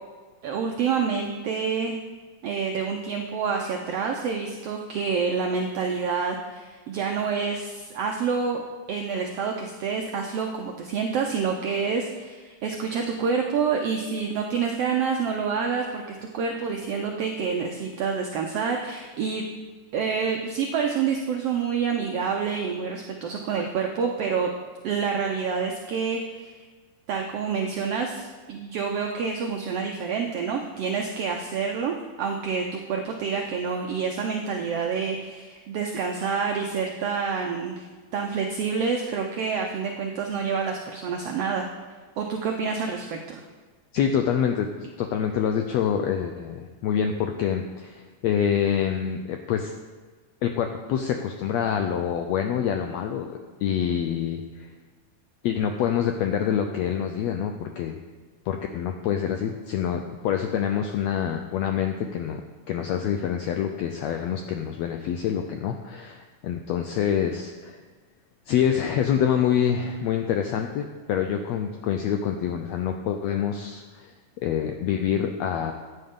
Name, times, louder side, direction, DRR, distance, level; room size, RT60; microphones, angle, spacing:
voice 1, 0.4-2.0 2.4-8.6 8.9-19.5 19.9-24.5 24.8-26.7 27.1-37.8 38.1-41.6 42.2-43.4, right 5 dB, 80° right, 2 dB, 1.4 m, -28 dB
voice 2, 43.9-49.7 50.4-54.7 55.4-58.0 58.5-62.4 62.7-67.8 68.5-75.7, left 8 dB, 85° left, 5 dB, 1.5 m, -26 dB
14.5 x 9.3 x 3.7 m, 1.4 s
omnidirectional pair, 3.7 m